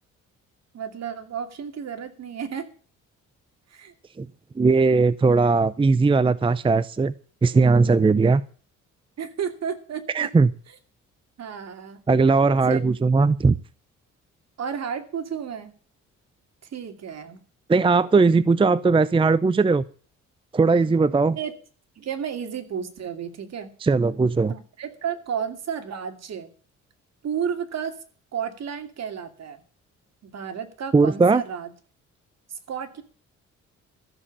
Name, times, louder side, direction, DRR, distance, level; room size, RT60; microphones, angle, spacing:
voice 1, 0.7-2.7 3.7-3.9 9.2-10.3 11.4-12.0 12.7-12.8 14.6-15.7 16.7-17.4 21.4-21.5 22.0-23.7 24.5-26.5 27.2-27.9 28.3-29.6 30.2-31.7 32.5-33.0, right 7 dB, 60° right, 7 dB, 2.6 m, -32 dB
voice 2, 4.6-7.1 7.4-8.4 10.1-10.5 12.1-13.6 17.7-19.8 20.5-21.4 23.8-24.5 30.9-31.4, right 4 dB, 15° right, 17 dB, 0.6 m, -19 dB
14.0 x 7.3 x 8.4 m, 0.41 s
cardioid pair, 90°, 30 cm